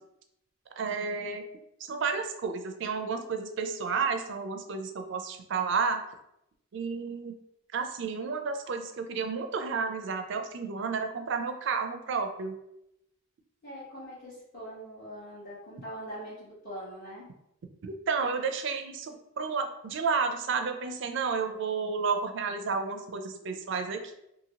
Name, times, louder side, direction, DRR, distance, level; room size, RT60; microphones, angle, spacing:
voice 1, 0.8-1.5 1.8-6.0 6.7-7.3 7.7-12.6 17.8-24.1, right 5 dB, 60° right, 6 dB, 0.4 m, -31 dB
voice 2, 13.6-17.3, equal, 45° left, -10 dB, 1.0 m, -42 dB
2.8 x 2.7 x 2.7 m, 0.82 s
head